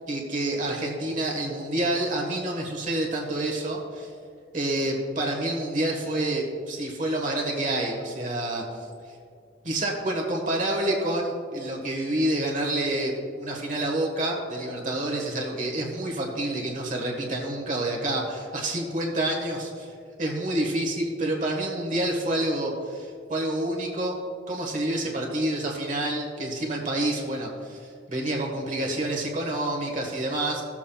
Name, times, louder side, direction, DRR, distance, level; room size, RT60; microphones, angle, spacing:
voice 1, 0.1-4.1 4.5-8.6 9.6-13.1 13.4-24.2 24.5-30.6, right 1 dB, 45° right, 0 dB, 1.4 m, -28 dB
17.0 x 7.3 x 2.3 m, 2.2 s
head